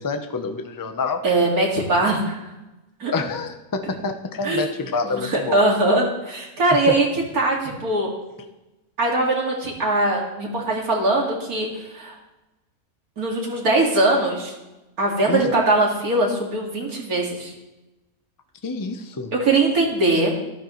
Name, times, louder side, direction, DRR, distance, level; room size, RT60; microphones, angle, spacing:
voice 1, 0.0-1.2 3.1-5.6 6.9-7.0 15.3-15.5 18.6-19.3, left 4 dB, 20° left, 6 dB, 0.5 m, -27 dB
voice 2, 1.2-2.4 3.0-3.1 4.4-4.7 5.1-8.1 9.0-12.1 13.2-14.5 15.0-17.5 19.3-20.3, right 2 dB, 90° right, -1 dB, 2.6 m, -21 dB
13.5 x 11.5 x 3.1 m, 1.0 s
omnidirectional pair, 1.5 m